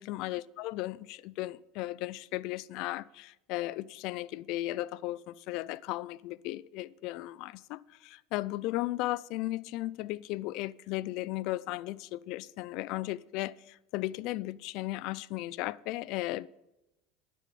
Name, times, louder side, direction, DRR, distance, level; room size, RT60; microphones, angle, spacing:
voice 1, 0.0-16.5, left 17 dB, 65° left, 0.4 m, -36 dB
11.5 x 10.0 x 5.2 m
supercardioid pair, 115°, 0 cm